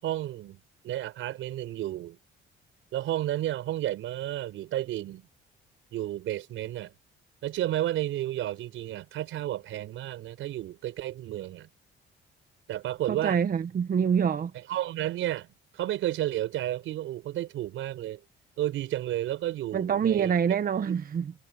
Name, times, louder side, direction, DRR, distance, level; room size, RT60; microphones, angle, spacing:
voice 1, 0.0-2.2 2.9-5.3 5.9-6.9 7.4-11.7 12.7-13.4 14.5-15.5 15.7-18.2 18.6-20.3, right 13 dB, 85° right, 5.1 m, -32 dB
voice 2, 13.1-14.5 19.7-21.3, right 7 dB, 45° right, 1.0 m, -26 dB
cardioid pair, 90°, 20 cm